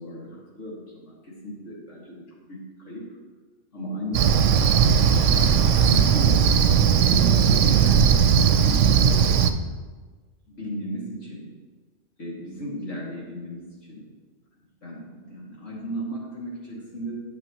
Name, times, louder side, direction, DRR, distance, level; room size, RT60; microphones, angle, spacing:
voice 1, 0.0-3.1 3.7-4.8 5.3-7.4 7.7-9.7 10.5-11.5 12.2-14.1 14.8-17.4, equal, 90° left, -5 dB, 2.6 m, -35 dB
Cricket, 4.1-9.5, right 7 dB, 85° right, 0.9 m, -18 dB
12.5 x 6.7 x 3.0 m, 1.4 s
omnidirectional pair, 1.2 m